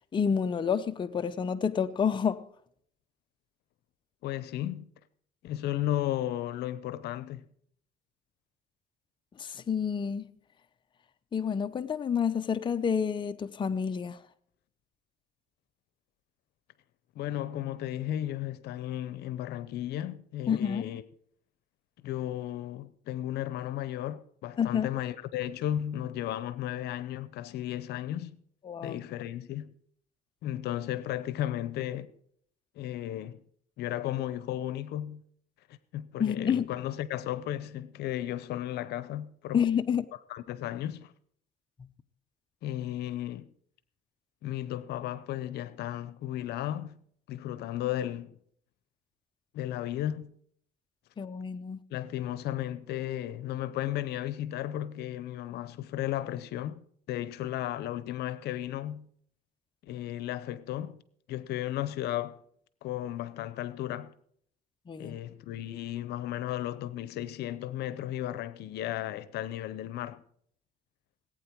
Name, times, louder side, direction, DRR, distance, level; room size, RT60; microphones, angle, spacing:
voice 1, 0.1-2.4 9.4-10.3 11.3-14.2 20.5-21.0 24.6-24.9 28.6-29.0 36.2-36.7 39.5-40.0 51.2-51.8 64.9-65.2, left 7 dB, 30° left, 0.6 m, -29 dB
voice 2, 4.2-4.9 5.4-7.4 17.2-21.0 22.0-28.3 28.8-29.7 30.4-32.1 32.8-33.4 33.8-35.2 35.9-39.6 40.3-41.1 42.6-43.5 44.4-46.9 47.3-48.4 49.5-50.3 51.9-59.1 59.8-61.0 61.3-62.4 62.8-64.1 65.0-70.2, left 12 dB, 75° left, 0.8 m, -34 dB
18.5 x 8.9 x 4.6 m
cardioid pair, 110°, 17 cm